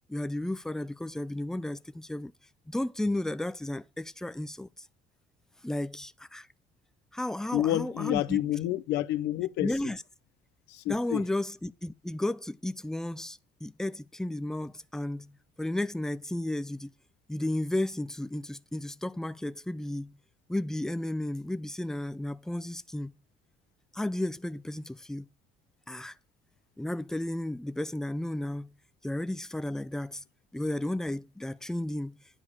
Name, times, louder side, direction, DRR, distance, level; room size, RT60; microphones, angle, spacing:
voice 1, 0.1-2.3 2.7-4.7 5.6-6.5 7.1-8.4 9.6-10.0 10.9-15.3 15.6-16.9 17.3-20.1 20.5-23.1 23.9-25.3 25.9-26.1 26.8-28.7 29.0-30.2 30.5-32.2, left 1 dB, 5° left, 0.4 m, -33 dB
voice 2, 7.5-9.9 10.7-11.2, left 14 dB, 85° left, 0.7 m, -29 dB
10.0 x 4.9 x 7.1 m
cardioid pair, 110°, 17 cm